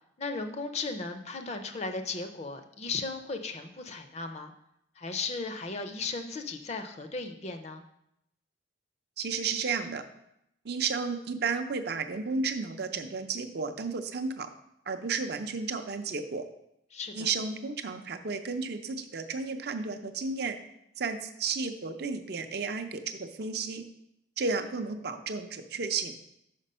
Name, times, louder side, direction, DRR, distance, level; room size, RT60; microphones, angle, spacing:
voice 1, 0.2-4.5 5.0-7.8 16.9-17.3, left 3 dB, 35° left, 7 dB, 0.5 m, -36 dB
voice 2, 9.2-10.0 10.6-14.5 14.9-16.4 17.1-20.6 21.0-23.8 24.4-26.1, right 4 dB, 55° right, 8 dB, 0.5 m, -33 dB
5.9 x 5.2 x 5.5 m, 0.80 s
head